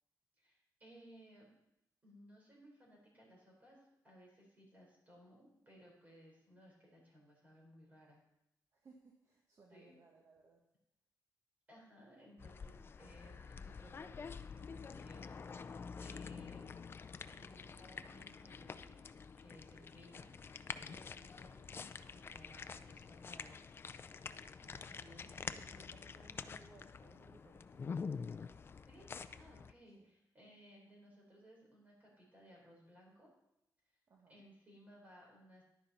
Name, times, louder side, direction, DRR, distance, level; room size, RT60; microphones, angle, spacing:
voice 1, 0.4-1.5 2.0-3.8 4.0-8.2 9.7-10.0 11.7-15.3 15.5-16.8 17.3-19.1 19.4-21.8 22.1-23.6 24.8-25.9 28.8-33.3 34.3-35.6, equal, 25° right, -2 dB, 4.2 m, -61 dB
voice 2, 8.7-10.7 24.6-28.6 29.9-30.1 34.1-34.5, right 4 dB, 45° right, 1 dB, 1.1 m, -64 dB
sound 1, 12.4-29.7, left 5 dB, 35° left, 0.4 m, -48 dB
11.0 x 10.0 x 4.2 m, 0.84 s
wide cardioid pair, 175°, 7 cm